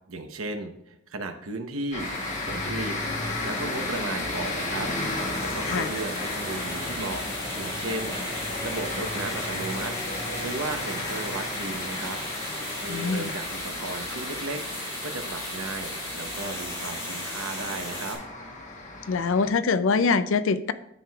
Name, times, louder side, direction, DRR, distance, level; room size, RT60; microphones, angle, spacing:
voice 1, 0.1-2.1 2.4-4.9 5.4-7.2 7.5-8.2 8.6-9.9 10.4-12.2 12.8-14.6 15.0-18.2, right 2 dB, 80° right, 6 dB, 0.9 m, -35 dB
sound 1, 1.9-19.5, left 2 dB, 35° left, 1.1 m, -34 dB
sound 2, 2.0-18.1, left 1 dB, 15° left, 3.3 m, -36 dB
voice 2, 12.9-13.3 19.1-20.7, left 4 dB, 65° left, 13 dB, 0.4 m, -24 dB
9.9 x 7.5 x 2.4 m, 0.77 s
head